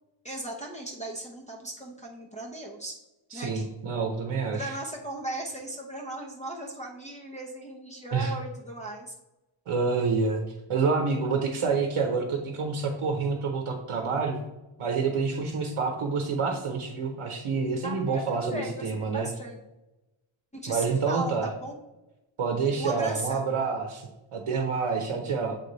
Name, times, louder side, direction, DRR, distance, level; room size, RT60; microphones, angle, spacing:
voice 1, 0.2-3.0 3.3-3.7 4.5-9.1 17.8-19.6 20.5-21.7 22.8-23.5, right 1 dB, 15° left, -3 dB, 0.7 m, -37 dB
voice 2, 3.3-4.7 8.1-8.3 9.7-10.4 10.7-14.4 14.8-19.3 20.7-21.5 22.4-25.6, right 4 dB, 75° right, 3 dB, 0.9 m, -28 dB
7.6 x 3.3 x 3.9 m, 1.0 s
wide cardioid pair, 100°, 49 cm